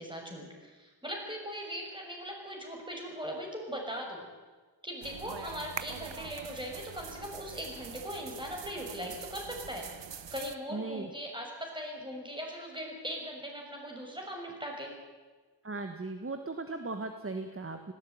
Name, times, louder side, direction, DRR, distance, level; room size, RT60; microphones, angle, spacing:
voice 1, 0.0-4.3 4.8-9.9 10.3-14.9, equal, 10° right, 0 dB, 6.9 m, -40 dB
sound 1, 5.0-10.6, right 7 dB, 80° right, 1.1 m, -44 dB
voice 2, 10.7-11.1 15.6-17.9, right 3 dB, 30° right, 7 dB, 1.6 m, -37 dB
19.5 x 16.5 x 9.5 m, 1.3 s
wide cardioid pair, 85°, 43 cm